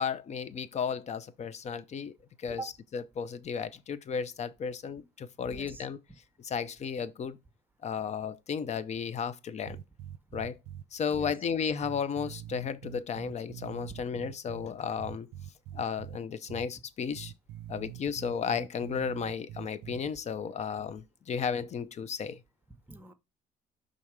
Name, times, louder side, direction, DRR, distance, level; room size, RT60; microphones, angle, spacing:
voice 1, 0.0-2.6 2.9-6.0 6.4-7.4 7.8-9.8 10.3-10.6 10.9-15.3 15.7-17.3 17.7-22.4, left 6 dB, 40° left, 0.7 m, -34 dB
voice 2, 5.4-5.9 11.1-11.3 13.8-14.0 22.7-23.1, right 3 dB, 10° right, 1.0 m, -44 dB
sound 1, 9.6-10.8 11.1-11.3 11.8-14.7 15.0-16.2 16.5-16.7 17.1-20.0, right 12 dB, 85° right, 0.5 m, -44 dB
5.7 x 3.8 x 4.8 m
cardioid pair, 110°, 17 cm